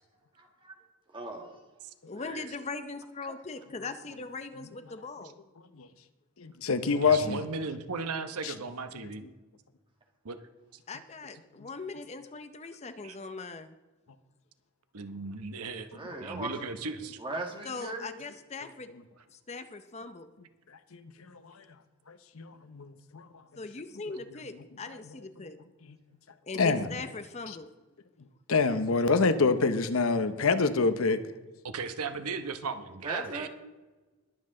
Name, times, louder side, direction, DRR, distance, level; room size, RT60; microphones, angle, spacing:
voice 1, 0.4-0.8 1.1-1.6 2.2-2.5 15.9-16.7 17.2-18.1 33.0-33.5, right 2 dB, 20° right, 1.8 m, -38 dB
voice 2, 2.0-5.4 10.9-13.8 17.6-18.9 19.3-20.3 23.6-25.6 26.4-27.7, left 3 dB, 30° left, 0.6 m, -40 dB
voice 3, 6.4-7.4 8.4-8.5 20.9-21.6 22.1-23.3 26.6-26.9 28.5-31.2, left 4 dB, 65° left, 0.8 m, -26 dB
voice 4, 7.0-9.3 10.2-10.4 13.0-13.2 14.9-17.2 31.6-33.5, right 4 dB, 85° right, 1.0 m, -36 dB
21.0 x 7.7 x 3.8 m
head